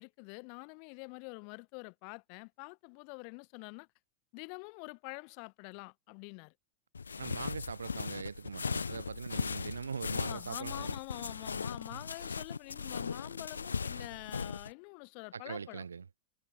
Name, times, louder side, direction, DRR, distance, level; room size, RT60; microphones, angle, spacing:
voice 1, 0.0-3.9 4.3-6.5 10.3-15.8, left 40 dB or more, 45° left, 1.8 m, -46 dB
sound 1, 6.9-14.7, left 5 dB, 75° left, 0.3 m, -38 dB
voice 2, 7.2-11.0 11.9-12.0 15.3-16.1, right 6 dB, 70° right, 0.6 m, -41 dB
figure-of-eight pair, 90°, 0 cm